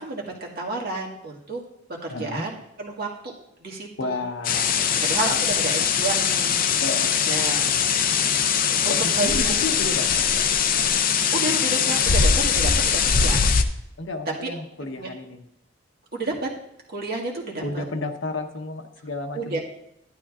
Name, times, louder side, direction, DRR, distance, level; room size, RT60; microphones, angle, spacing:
voice 1, 0.0-1.6 2.0-3.3 3.6-4.2 5.0-6.6 7.3-8.0 8.8-9.5 11.3-13.4 14.4-14.5 15.0-15.1 16.1-16.5 16.9-17.8 19.3-19.6, right 3 dB, 55° right, -2 dB, 1.8 m, -30 dB
voice 2, 2.1-2.4 4.0-5.0 5.3-5.4 6.8-7.3 7.6-7.9 8.9-10.4 14.0-15.4 17.6-19.6, left 2 dB, 75° left, 5 dB, 1.0 m, -32 dB
sound 1, 4.4-13.6, left 6 dB, 50° left, 0.6 m, -21 dB
11.5 x 11.0 x 2.4 m, 0.82 s
head